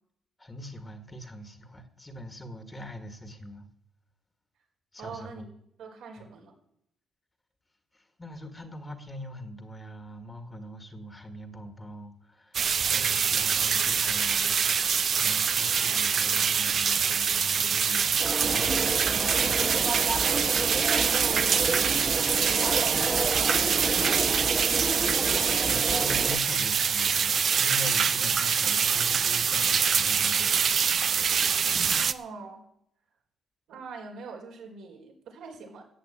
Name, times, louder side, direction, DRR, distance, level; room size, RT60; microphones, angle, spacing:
voice 1, 0.4-3.7 4.9-5.5 6.2-6.3 7.9-20.1 25.6-31.7, equal, 20° left, 1.9 m, -43 dB
voice 2, 5.0-5.5 5.8-6.5 21.0-23.8 25.8-26.0 31.9-32.6 33.7-35.8, right 4 dB, 80° right, 4.7 m, -42 dB
sound 1, 12.5-32.1, right 7 dB, 55° right, 0.7 m, -25 dB
sound 2, 18.2-26.4, right 3 dB, 30° right, 1.3 m, -31 dB
14.5 x 8.0 x 8.7 m
cardioid pair, 90°, 0 cm